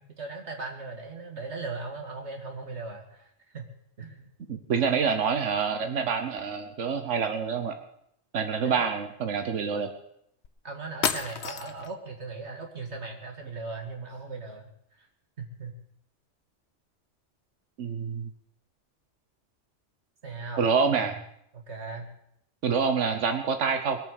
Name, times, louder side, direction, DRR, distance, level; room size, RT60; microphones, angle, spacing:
voice 1, 0.0-3.7 4.0-4.3 8.6-9.0 10.6-14.7 15.0-15.1 15.4-15.7 20.2-21.2 21.5-22.1, right 3 dB, 70° right, 2 dB, 2.4 m, -38 dB
voice 2, 4.5-7.8 8.3-9.9 17.8-18.3 20.6-21.1 22.6-24.0, right 6 dB, 90° right, 6 dB, 1.4 m, -27 dB
sound 1, 10.4-10.5 11.0-11.9, left 7 dB, 70° left, 1.1 m, -30 dB
21.5 x 8.8 x 6.5 m, 0.74 s
omnidirectional pair, 1.2 m